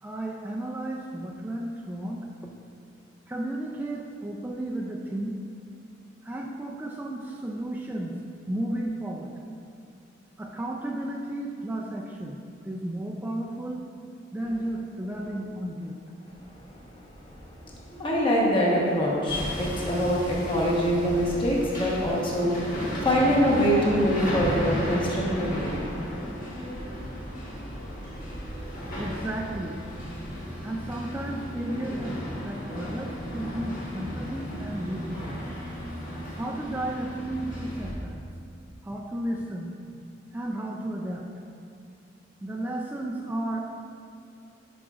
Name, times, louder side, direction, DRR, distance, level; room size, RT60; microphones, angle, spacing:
voice 1, 0.0-2.2 3.3-5.3 6.2-8.2 8.5-9.3 10.4-13.9 14.3-16.0 29.0-29.8 30.6-35.4 36.4-38.2 38.8-39.7 40.3-41.3 42.4-43.6, right 1 dB, 10° right, -2 dB, 0.3 m, -33 dB
voice 2, 17.9-26.1, equal, 25° left, -4 dB, 1.1 m, -24 dB
Hammer, 19.3-37.9, equal, 45° left, 1.6 m, -34 dB
11.5 x 5.0 x 2.4 m, 2.4 s
head